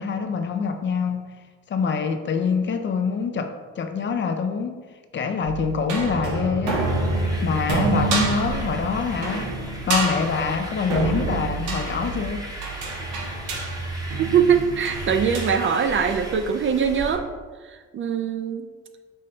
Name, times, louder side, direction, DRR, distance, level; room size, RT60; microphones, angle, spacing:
voice 1, 0.0-1.3 1.7-4.8 5.1-6.8 7.4-9.5 9.9-12.5, left 5 dB, 40° left, 0.4 m, -25 dB
sound 1, 5.4-15.5, right 3 dB, 90° right, 0.8 m, -27 dB
sound 2, 6.7-17.2, equal, 10° right, 0.9 m, -38 dB
voice 2, 14.2-17.2 17.6-18.7, right 7 dB, 40° right, 0.4 m, -22 dB
5.5 x 2.7 x 3.2 m
cardioid pair, 90°, 30 cm